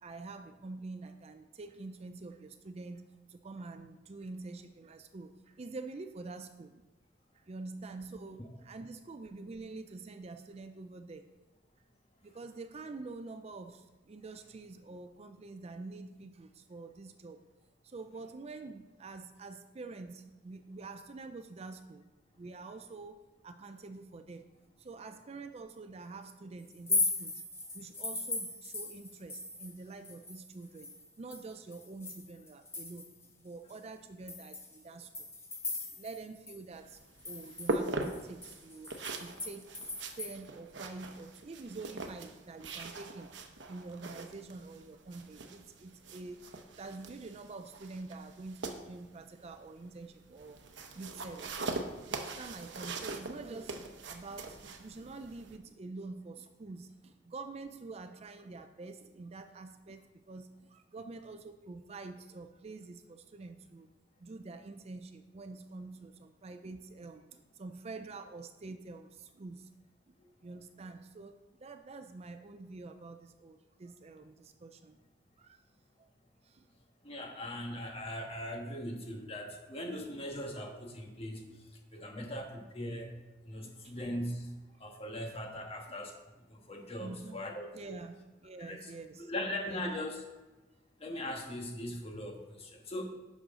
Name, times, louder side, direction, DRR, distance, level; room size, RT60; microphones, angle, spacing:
voice 1, 0.0-3.0 3.3-6.9 7.3-11.3 12.2-17.4 17.8-22.1 22.4-24.4 24.8-27.4 27.7-30.9 31.2-33.1 33.4-35.3 35.9-37.0 37.2-39.7 40.0-43.3 43.7-50.6 50.9-51.7 52.1-63.9 64.2-69.7 70.1-70.2 70.4-75.0 75.4-75.6 76.0-76.1 76.4-76.7 77.2-77.4 81.5-81.6 82.9-83.2 83.6-84.0 87.0-87.4 87.7-89.3 89.7-89.8, right 3 dB, 35° right, 8 dB, 0.4 m, -47 dB
sound 1, 26.7-29.8 30.0-33.2 33.7-33.8 34.3-36.2 36.5-36.6 36.9-40.3, left 3 dB, 15° left, 1.1 m, -38 dB
sound 2, 36.7-55.6, right 2 dB, 75° right, 0.8 m, -42 dB
voice 2, 77.0-81.4 81.9-83.2 83.4-84.5 84.8-86.1 86.5-87.9 88.6-88.9 89.3-90.2 91.0-93.0, left 1 dB, 30° left, 1 dB, 1.4 m, -40 dB
10.5 x 6.3 x 3.7 m, 1.2 s
head